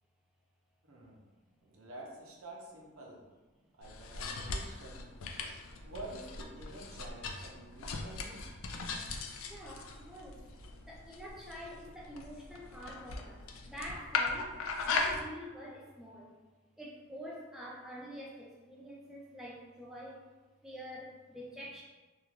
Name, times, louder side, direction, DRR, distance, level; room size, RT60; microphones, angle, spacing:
voice 1, 0.9-1.2 1.6-3.2 3.7-5.1 5.8-8.4, right 2 dB, 85° right, -2 dB, 0.6 m, -48 dB
sound 1, 3.8-15.2, left 4 dB, 75° left, 0.3 m, -39 dB
voice 2, 9.5-10.6 10.8-16.3 16.8-20.3 20.6-21.8, equal, ahead, -4 dB, 0.3 m, -47 dB
3.1 x 2.3 x 2.4 m, 1.3 s
head